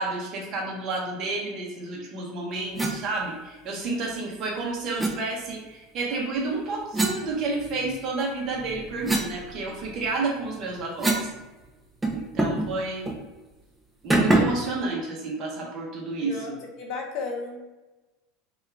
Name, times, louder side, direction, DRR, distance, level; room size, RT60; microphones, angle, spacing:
voice 1, 0.0-11.3 12.1-13.0 14.0-16.6, right 3 dB, 30° right, -1 dB, 0.7 m, -30 dB
sound 1, 2.8-3.0 5.0-5.2 6.9-8.0 8.5-11.4 11.6-11.7 12.0-12.7 13.0-13.2 14.1-14.7, right 2 dB, 5° right, 0.4 m, -26 dB
voice 2, 16.2-17.7, left 4 dB, 45° left, 1 dB, 0.6 m, -34 dB
3.4 x 2.3 x 3.3 m, 1.1 s
supercardioid pair, 175°, 0 cm